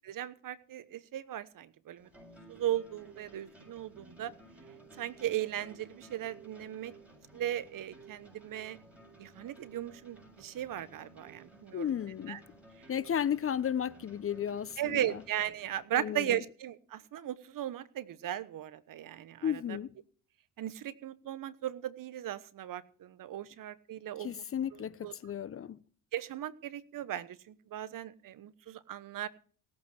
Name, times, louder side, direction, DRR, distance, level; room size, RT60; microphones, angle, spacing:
voice 1, 0.0-2.1 2.5-4.3 5.0-6.9 7.3-8.8 9.2-11.9 12.3-12.4 14.8-19.8 20.6-24.4 25.0-25.1 26.1-29.3, right 12 dB, 50° right, 1.2 m, -37 dB
sound 1, 2.0-15.8, right 2 dB, 5° right, 7.9 m, -56 dB
voice 2, 11.7-12.4 12.9-15.2 15.9-16.4 19.4-19.9 24.2-25.8, left 9 dB, 30° left, 0.8 m, -34 dB
17.5 x 8.7 x 6.3 m
supercardioid pair, 80°, 43 cm